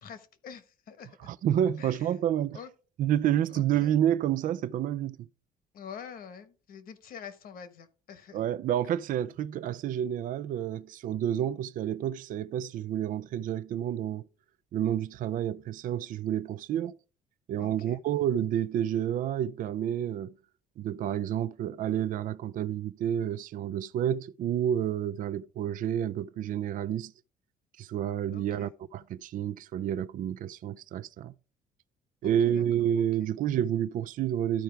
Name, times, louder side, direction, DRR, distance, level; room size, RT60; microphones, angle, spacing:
voice 1, 0.0-1.3 1.8-2.1 2.5-2.7 3.5-3.9 5.7-8.4 17.6-18.0 28.3-28.7 32.2-32.6 32.9-33.0, left 7 dB, 60° left, 1.2 m, -46 dB
voice 2, 1.3-2.6 3.0-5.3 8.3-14.3 14.7-17.0 17.5-20.3 20.8-27.1 27.8-31.3 32.2-34.6, right 10 dB, 55° right, 0.4 m, -29 dB
13.0 x 4.5 x 3.4 m
cardioid pair, 110°, 17 cm